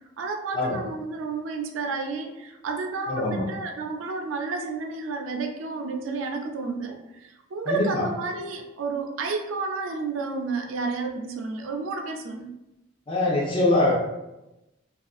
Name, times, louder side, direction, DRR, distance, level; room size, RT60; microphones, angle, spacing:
voice 1, 0.2-12.5, right 4 dB, 85° right, 4 dB, 0.4 m, -31 dB
voice 2, 3.1-3.4 7.7-8.0 13.1-13.9, left 2 dB, 25° left, -4 dB, 0.5 m, -23 dB
2.5 x 2.3 x 2.4 m, 0.96 s
head